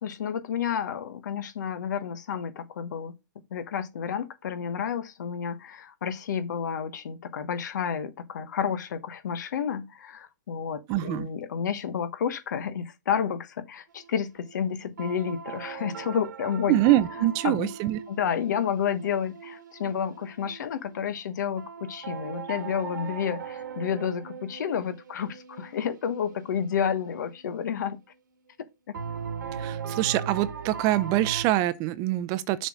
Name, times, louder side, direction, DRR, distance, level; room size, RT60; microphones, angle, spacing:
voice 1, 0.0-3.1 3.5-16.8 17.4-17.7 18.1-28.0, left 7 dB, 65° left, 1.1 m, -30 dB
voice 2, 10.9-11.3 16.7-18.0 29.5-32.7, right 15 dB, 35° right, 0.6 m, -24 dB
sound 1, 13.9-14.6 15.0-21.2 21.6-28.1 28.9-31.5, right 7 dB, 75° right, 1.5 m, -39 dB
6.8 x 4.3 x 5.0 m
hypercardioid pair, 125°, 10 cm